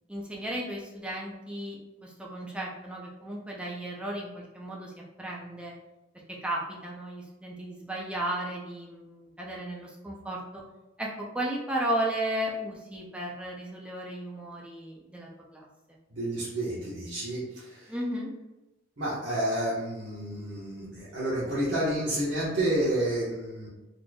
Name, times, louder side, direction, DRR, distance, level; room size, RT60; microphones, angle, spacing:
voice 1, 0.1-4.9 5.2-5.7 6.3-10.6 11.0-15.7 17.9-18.3, right 1 dB, 5° right, -3 dB, 0.5 m, -34 dB
voice 2, 16.1-17.9 19.0-23.7, right 1 dB, 75° right, -10 dB, 1.1 m, -30 dB
4.1 x 3.2 x 2.3 m, 1.0 s
head